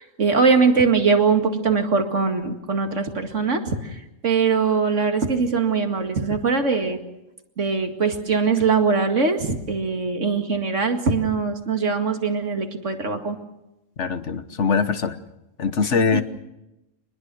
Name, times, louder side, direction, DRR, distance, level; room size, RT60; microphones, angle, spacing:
voice 1, 0.0-7.0 7.6-13.4 16.1-16.2, right 4 dB, 70° right, 5 dB, 2.4 m, -21 dB
voice 2, 14.0-15.2 15.6-16.2, left 5 dB, 65° left, 11 dB, 1.5 m, -22 dB
25.5 x 20.5 x 6.2 m, 0.93 s
omnidirectional pair, 1.3 m